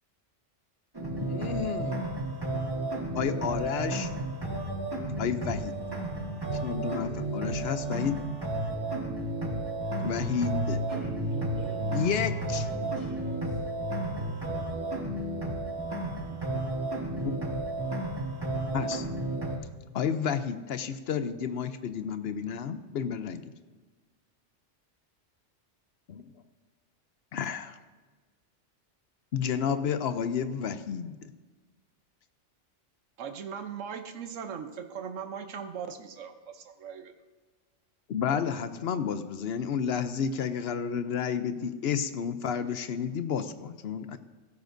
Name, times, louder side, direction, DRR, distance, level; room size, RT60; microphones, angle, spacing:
sound 1, 0.9-19.6, right 2 dB, 20° right, 1.5 m, -32 dB
voice 1, 1.2-2.1 3.1-4.1 5.2-5.7 6.6-8.2 9.9-10.8 11.4-11.5 11.9-12.7 17.1-17.6 18.7-19.1 19.9-23.4 26.1-26.3 27.3-27.8 29.3-31.3 38.1-44.2, left 7 dB, 60° left, 0.8 m, -31 dB
voice 2, 10.9-12.1 12.5-13.6, right 1 dB, 65° right, 3.9 m, -42 dB
voice 3, 33.2-37.1, right 7 dB, 90° right, 1.2 m, -39 dB
15.5 x 13.5 x 2.6 m
omnidirectional pair, 1.3 m